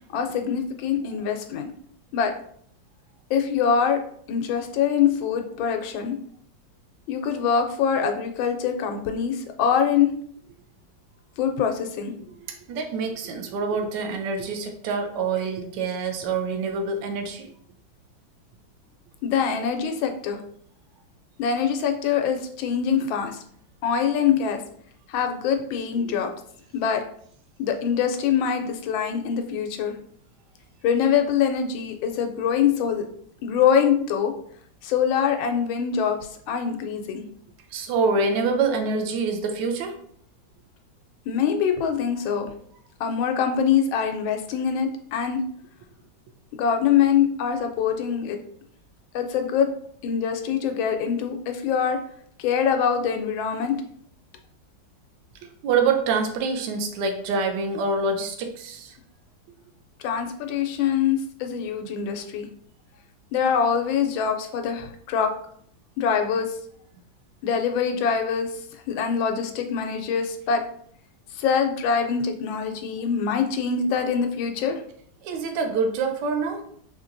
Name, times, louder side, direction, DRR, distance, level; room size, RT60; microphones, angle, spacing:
voice 1, 0.1-1.7 2.1-2.3 3.3-4.0 4.3-6.2 7.1-10.1 11.4-12.1 19.2-20.4 21.4-23.4 23.8-24.6 25.1-26.3 26.7-27.0 27.6-29.9 30.8-33.1 33.4-34.3 34.8-36.2 36.5-37.2 41.3-42.5 43.0-45.4 46.5-48.4 49.1-49.7 50.0-52.0 52.4-53.7 60.0-62.5 63.3-65.3 66.0-66.6 67.4-68.5 68.9-70.6 71.3-74.8, left 7 dB, 90° left, 5 dB, 1.4 m, -24 dB
voice 2, 12.5-17.5 26.0-26.2 37.7-40.0 55.6-59.0 75.2-76.6, right 4 dB, 75° right, 5 dB, 1.2 m, -26 dB
4.8 x 2.8 x 2.5 m, 0.63 s
omnidirectional pair, 2.1 m